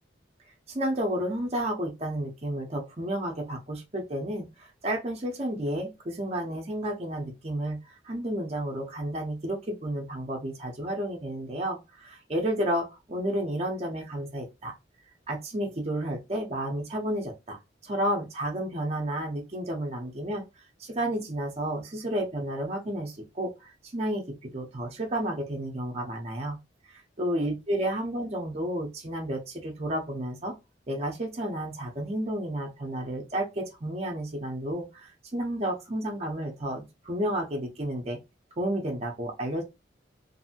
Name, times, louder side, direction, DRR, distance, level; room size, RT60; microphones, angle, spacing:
voice 1, 0.7-14.7 15.3-17.6 17.8-20.4 20.8-26.6 27.2-30.5 30.9-38.2 38.6-39.6, right 1 dB, 35° right, 0.7 m, -31 dB
2.7 x 2.6 x 2.7 m
head